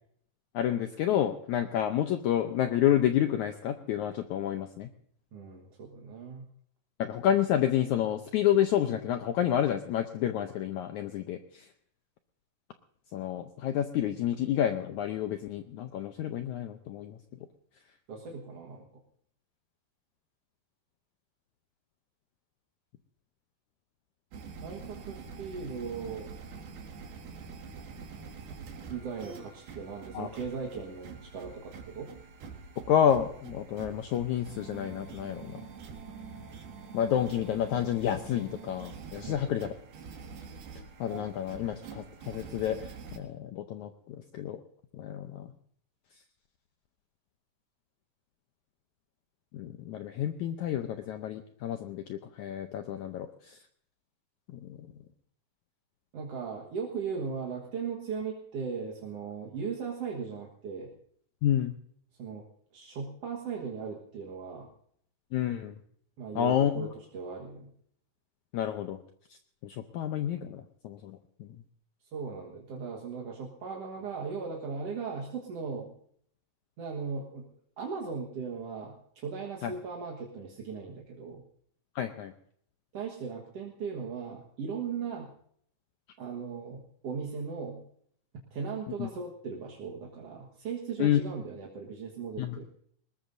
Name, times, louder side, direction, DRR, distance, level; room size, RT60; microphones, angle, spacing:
voice 1, 0.5-4.9 7.0-11.7 13.1-17.2 30.1-30.3 32.9-35.6 36.9-39.7 41.0-44.6 45.0-45.5 49.5-53.6 54.5-54.8 61.4-61.7 65.3-65.7 66.3-66.9 68.5-69.0 69.6-71.5 79.6-79.7 81.9-82.3 89.0-89.1 91.0-91.2 92.4-92.6, left 10 dB, 80° left, 6 dB, 1.7 m, -29 dB
voice 2, 5.3-6.4 18.1-19.0 24.6-26.3 28.9-32.1 39.2-39.6 56.1-60.9 62.2-62.5 62.7-64.7 66.2-67.7 72.1-75.9 76.8-77.5 77.8-81.4 82.9-85.3 86.2-87.8 88.5-92.6, right 5 dB, 55° right, -1 dB, 2.0 m, -38 dB
sound 1, 24.3-43.2, right 5 dB, 75° right, 3.7 m, -45 dB
22.0 x 20.0 x 2.6 m, 0.64 s
omnidirectional pair, 4.3 m